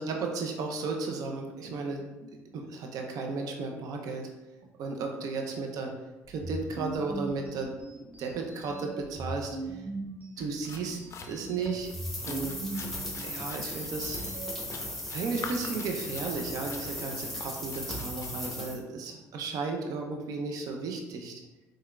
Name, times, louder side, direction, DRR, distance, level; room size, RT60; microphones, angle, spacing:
voice 1, 0.0-4.2 4.8-5.9 6.3-7.7 8.2-9.8 10.4-11.0 11.2-11.9 12.2-12.6 13.2-14.2 15.1-21.4, right 4 dB, 65° right, 2 dB, 0.5 m, -34 dB
sound 1, 6.2-14.5, right 2 dB, 25° right, 0.9 m, -40 dB
sound 2, 10.4-18.5, left 5 dB, 45° left, 0.4 m, -47 dB
sound 3, 11.8-18.8, left 1 dB, 5° left, 0.9 m, -37 dB
3.6 x 3.2 x 2.2 m, 1.1 s
supercardioid pair, 70°, 7 cm